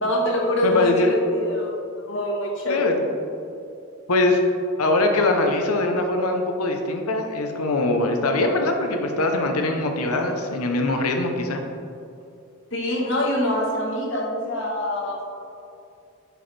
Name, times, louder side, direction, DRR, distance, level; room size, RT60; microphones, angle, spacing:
voice 1, 0.0-2.9 12.7-15.2, left 1 dB, 55° left, -1 dB, 1.3 m, -25 dB
voice 2, 0.6-1.1 2.7-3.0 4.1-4.4 4.8-11.6, left 2 dB, 80° left, 4 dB, 0.8 m, -22 dB
9.2 x 6.0 x 3.3 m, 2.5 s
head